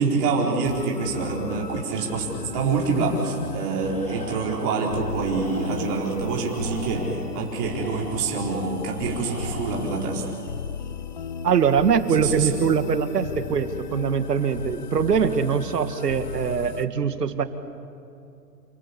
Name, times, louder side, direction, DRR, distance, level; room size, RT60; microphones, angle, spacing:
voice 1, 0.0-2.3 2.5-10.2 12.2-12.5, right 4 dB, 25° right, -2 dB, 4.4 m, -26 dB
sound 1, 0.6-16.9, left 6 dB, 30° left, 0.6 m, -36 dB
Tools, 3.9-4.8 5.2-6.0 6.4-8.3 9.0-10.0, right 1 dB, 5° left, 4.9 m, -41 dB
voice 2, 11.4-17.4, right 6 dB, 75° right, 10 dB, 1.9 m, -22 dB
28.5 x 18.5 x 8.5 m, 2.7 s
hypercardioid pair, 155°, 49 cm